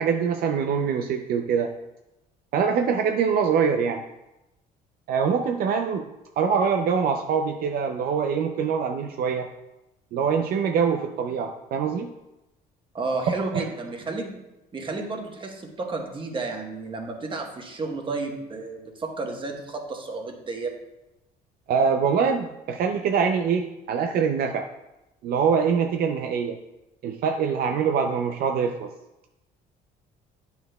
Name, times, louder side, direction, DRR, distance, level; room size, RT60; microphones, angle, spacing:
voice 1, 0.0-1.7 2.5-4.0 5.1-6.1 6.4-9.5 10.1-12.1 13.3-13.6 21.7-24.7 25.2-26.6 27.0-28.9, right 6 dB, 65° right, 4 dB, 0.5 m, -24 dB
voice 2, 12.9-14.4 14.7-20.7, right 3 dB, 30° right, 2 dB, 1.2 m, -32 dB
9.3 x 5.7 x 2.2 m, 0.95 s
cardioid pair, 110°, 17 cm